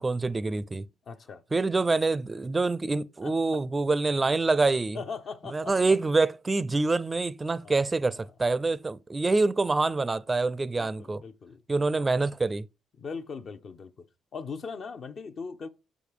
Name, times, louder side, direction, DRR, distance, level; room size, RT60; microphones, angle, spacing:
voice 1, 0.0-0.9 1.5-5.0 5.5-11.2 11.7-12.7, right 3 dB, 25° right, 0.4 m, -26 dB
voice 2, 1.1-1.4 3.2-3.3 4.9-6.0 7.6-7.9 10.7-11.6 13.0-14.1 14.3-15.7, left 5 dB, 55° left, 0.7 m, -39 dB
6.9 x 5.1 x 4.9 m
cardioid pair, 90°, 0 cm